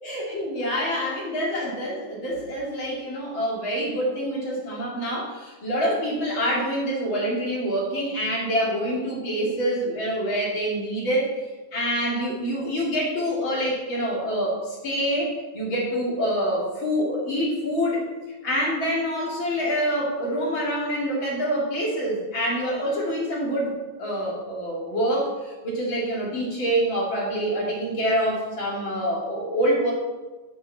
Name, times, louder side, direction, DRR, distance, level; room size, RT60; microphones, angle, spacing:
voice 1, 0.0-11.4 11.7-18.1 18.4-23.7 24.0-29.9, equal, 35° left, -3 dB, 2.4 m, -26 dB
8.4 x 6.7 x 7.7 m, 1.2 s
omnidirectional pair, 5.0 m